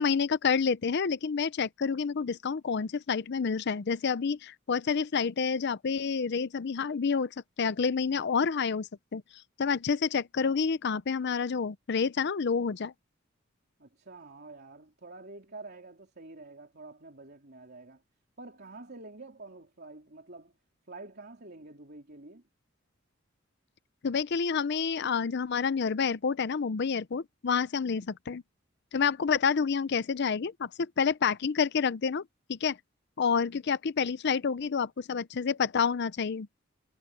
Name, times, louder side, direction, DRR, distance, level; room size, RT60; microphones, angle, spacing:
voice 1, 0.0-7.3 7.6-9.2 9.6-12.9 24.0-28.4 28.9-32.2 32.5-32.8 33.2-36.5, left 6 dB, 55° left, 0.5 m, -28 dB
voice 2, 13.8-18.0 18.4-20.5 20.9-22.4, right 3 dB, 55° right, 3.3 m, -48 dB
head